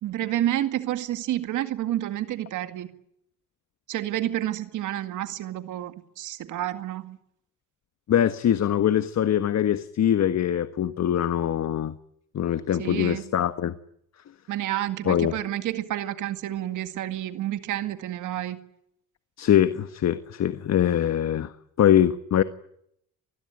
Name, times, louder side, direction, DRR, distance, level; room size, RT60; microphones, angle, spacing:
voice 1, 0.0-2.9 3.9-7.2 12.8-13.2 14.5-18.6, right 13 dB, 85° right, 9 dB, 2.1 m, -29 dB
voice 2, 8.1-12.0 12.3-13.7 15.1-15.3 19.4-21.5 21.8-22.4, left 10 dB, 60° left, 11 dB, 1.4 m, -23 dB
27.0 x 20.5 x 9.0 m, 0.74 s
cardioid pair, 90°, 30 cm